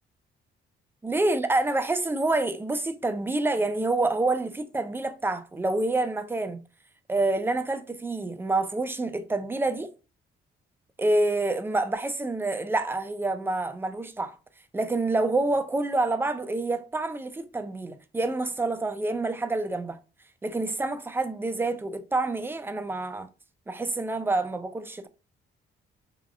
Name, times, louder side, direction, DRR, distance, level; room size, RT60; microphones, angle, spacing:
voice 1, 1.0-6.6 7.1-9.9 11.0-14.3 14.7-20.0 20.4-23.3 23.7-25.1, right 2 dB, 10° right, 0.3 m, -27 dB
3.3 x 2.3 x 2.3 m
cardioid pair, 90°, 20 cm